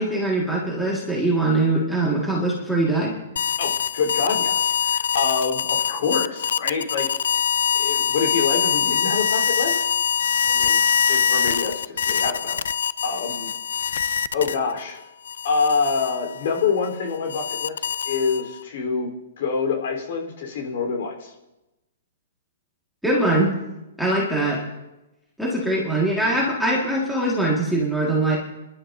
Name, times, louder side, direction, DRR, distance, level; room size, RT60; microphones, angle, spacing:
voice 1, 0.0-3.1 23.0-23.6 24.0-24.6 25.4-28.4, right 2 dB, ahead, -5 dB, 1.8 m, -22 dB
sound 1, 3.4-14.8 15.3-18.6, left 7 dB, 80° left, 0.4 m, -24 dB
voice 2, 3.6-7.1 7.7-9.8 10.5-10.8 11.1-12.6 13.0-13.5 14.3-15.0 15.4-19.1 19.4-21.3, left 5 dB, 55° left, 1 dB, 3.7 m, -26 dB
26.5 x 11.5 x 2.7 m, 0.99 s
hypercardioid pair, 170°, 0 cm